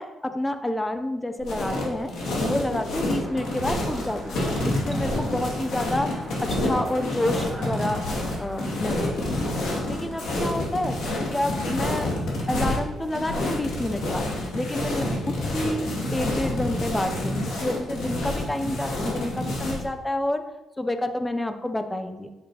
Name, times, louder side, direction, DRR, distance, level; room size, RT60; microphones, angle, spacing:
voice 1, 0.0-2.1 2.4-8.0 8.4-9.5 9.9-11.0 11.3-12.1 12.5-14.2 14.5-15.8 16.1-20.4 20.8-22.3, left 1 dB, 10° left, 8 dB, 0.5 m, -29 dB
sound 1, 1.4-19.8, left 1 dB, 75° left, 2.1 m, -28 dB
sound 2, 3.0-8.8, right 1 dB, 15° right, 1.0 m, -43 dB
8.4 x 6.4 x 2.8 m, 1.1 s
cardioid pair, 150°, 0 cm